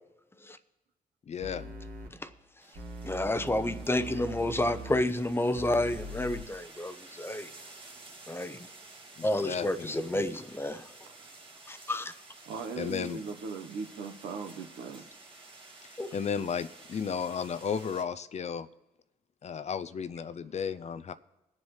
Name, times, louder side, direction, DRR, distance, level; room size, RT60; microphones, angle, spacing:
voice 1, 1.3-1.7 9.2-10.3 12.8-13.2 15.8-18.7 19.4-21.1, left 6 dB, 45° left, 13 dB, 0.5 m, -34 dB
sound 1, 1.4-2.1 2.8-5.0 5.6-6.4, right 1 dB, 70° right, 1.6 m, -41 dB
sound 2, 2.6-18.0, right 3 dB, 35° right, 1.7 m, -52 dB
voice 2, 3.0-7.5 8.3-8.7 9.2-10.9 11.7-12.1 16.0-16.1, left 1 dB, 15° left, 11 dB, 0.8 m, -30 dB
voice 3, 11.1-11.5 12.4-15.1, right 5 dB, 90° right, 6 dB, 1.0 m, -40 dB
21.5 x 7.4 x 3.2 m, 0.98 s
cardioid pair, 70°, 16 cm